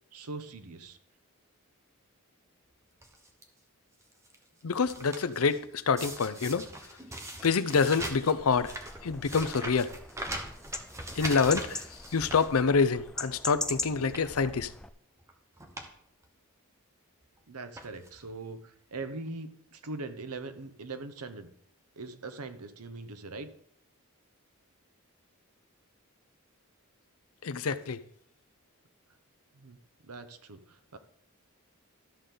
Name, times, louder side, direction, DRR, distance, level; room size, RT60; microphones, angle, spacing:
voice 1, 0.1-1.0 17.5-21.5 22.0-23.5 29.5-29.8 30.0-31.0, right 3 dB, 85° right, 0.9 m, -41 dB
sound 1, 3.0-3.4 4.0-5.6 6.0-13.1 13.5-13.6 14.0-14.4 15.2-15.3 15.6-15.9 16.2-16.3 17.2-17.4 17.7-18.2 19.0-19.1 19.3-19.4, right 1 dB, 15° right, 1.0 m, -41 dB
voice 2, 4.6-6.7 7.4-8.7 9.0-9.9 11.2-11.9 12.1-14.7 27.4-28.0, left 5 dB, 70° left, 0.6 m, -26 dB
sound 2, 8.4-14.9, left 2 dB, 5° left, 0.3 m, -41 dB
13.0 x 6.7 x 3.8 m
head